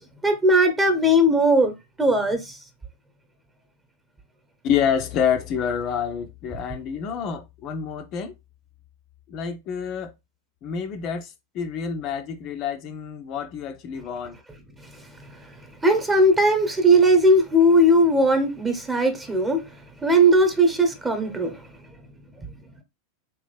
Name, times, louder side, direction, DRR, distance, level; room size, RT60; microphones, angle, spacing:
voice 1, 0.2-1.7 2.0-2.6 15.8-19.6 20.0-21.6, right 1 dB, 15° right, 1.0 m, -18 dB
voice 2, 4.6-8.3 9.3-10.1 10.6-14.4, left 7 dB, 35° left, 0.4 m, -27 dB
3.5 x 2.9 x 3.3 m
figure-of-eight pair, 90°, 0 cm